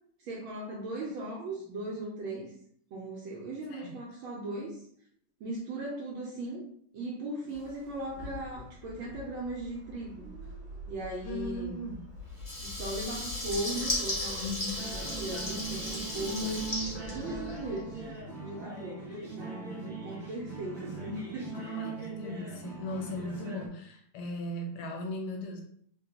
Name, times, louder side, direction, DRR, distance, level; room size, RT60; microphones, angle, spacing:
voice 1, 0.2-2.5 2.9-4.8 5.4-6.6 6.9-10.2 10.9-11.7 12.6-16.8 17.1-18.0 18.4-21.8, right 1 dB, 75° right, -3 dB, 1.5 m, -38 dB
sound 1, 7.5-14.5, left 2 dB, 60° right, 1.3 m, -46 dB
voice 2, 11.2-12.1 14.4-14.9 21.5-25.6, left 1 dB, 65° left, 1 dB, 1.1 m, -38 dB
Water tap faucet / Liquid, 12.4-17.9, left 1 dB, 35° left, 0.4 m, -35 dB
sound 2, 14.8-23.7, right 4 dB, 45° right, 1.0 m, -40 dB
4.0 x 2.2 x 2.8 m, 0.63 s
omnidirectional pair, 2.3 m